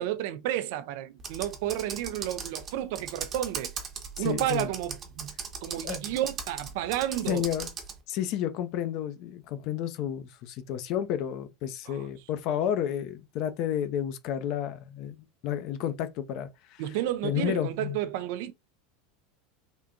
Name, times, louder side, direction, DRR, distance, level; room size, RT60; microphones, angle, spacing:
voice 1, 0.0-3.7 4.2-5.3 5.6-7.5 11.9-12.0 16.8-18.5, right 13 dB, 60° right, 0.3 m, -31 dB
Computer keyboard, 1.2-8.0, right 6 dB, 35° right, 0.8 m, -38 dB
voice 2, 4.2-4.7 5.8-6.0 7.3-7.7 8.1-16.8 17.2-18.0, left 10 dB, 50° left, 0.5 m, -31 dB
3.5 x 2.6 x 2.4 m
figure-of-eight pair, 80°, 0 cm